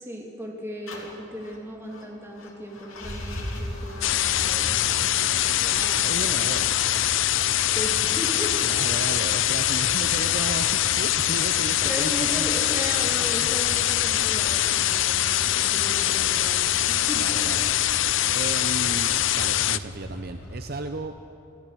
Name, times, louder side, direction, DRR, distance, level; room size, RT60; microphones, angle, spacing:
voice 1, 0.0-6.4 7.7-8.6 11.8-17.2, equal, 10° right, -1 dB, 2.5 m, -36 dB
sound 1, 0.9-20.7, equal, 80° left, 3.0 m, -39 dB
sound 2, 4.0-19.8, left 13 dB, 65° left, 0.5 m, -23 dB
voice 2, 5.5-6.7 8.6-12.5 13.4-13.5 17.1-21.1, right 3 dB, 50° right, 7 dB, 0.7 m, -35 dB
26.0 x 15.5 x 6.9 m, 2.6 s
head